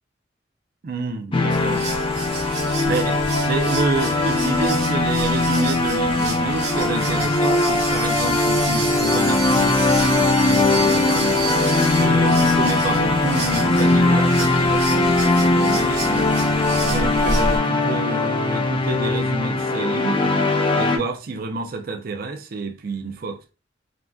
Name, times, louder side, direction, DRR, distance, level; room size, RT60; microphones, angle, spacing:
voice 1, 0.8-1.8 2.8-11.4 11.9-16.3 16.8-20.3 20.7-23.5, right 3 dB, 55° right, 0.4 m, -29 dB
sound 1, 1.3-21.0, left 2 dB, 30° left, 0.5 m, -20 dB
sound 2, 1.5-17.6, right 3 dB, 80° right, 1.1 m, -31 dB
3.6 x 2.5 x 2.3 m
head